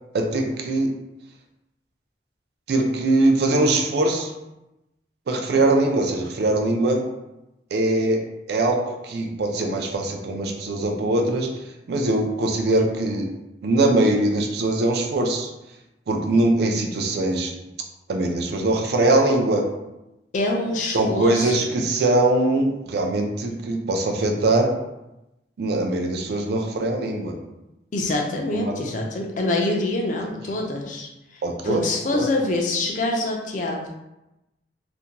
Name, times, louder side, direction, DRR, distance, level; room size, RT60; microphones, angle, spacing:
voice 1, 0.1-0.9 2.7-4.3 5.3-7.0 7.7-8.2 8.5-11.5 11.9-13.3 13.6-15.5 16.1-17.5 18.1-19.6 20.9-24.7 25.6-27.3 28.5-28.7 31.4-31.8 32.1-32.3, right 2 dB, 60° right, 3 dB, 0.4 m, -22 dB
voice 2, 20.3-21.7 27.9-33.9, left 2 dB, 45° left, 0 dB, 0.4 m, -25 dB
2.5 x 2.1 x 2.8 m, 0.94 s
head